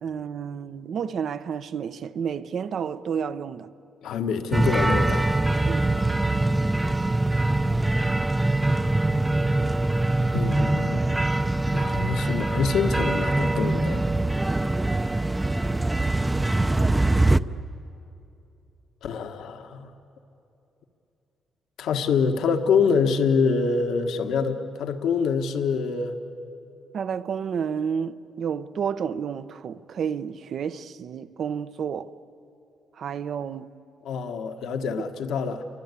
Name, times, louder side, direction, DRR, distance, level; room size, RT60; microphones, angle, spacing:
voice 1, 0.0-3.7 5.6-5.9 26.9-32.1 33.0-33.7, right 7 dB, 60° right, 0.9 m, -30 dB
voice 2, 4.0-5.4 10.3-11.1 11.7-14.1 19.0-19.9 21.8-26.2 34.0-35.6, left 5 dB, 80° left, 1.6 m, -25 dB
sound 1, 4.5-17.4, right 2 dB, 15° right, 0.7 m, -23 dB
29.0 x 24.5 x 8.4 m
cardioid pair, 90°, 0 cm